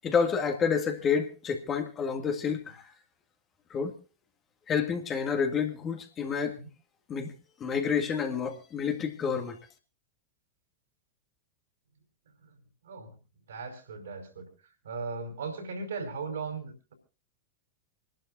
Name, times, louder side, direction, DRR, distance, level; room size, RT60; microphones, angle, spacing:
voice 1, 0.0-2.8 3.7-4.0 4.7-6.6 7.1-7.3 7.6-9.6, left 6 dB, 25° left, 4 dB, 1.9 m, -29 dB
voice 2, 12.8-13.1 13.5-14.5 14.8-16.9, right 4 dB, 65° right, 5 dB, 5.1 m, -37 dB
28.0 x 12.0 x 2.6 m, 0.32 s
figure-of-eight pair, 90°, 0 cm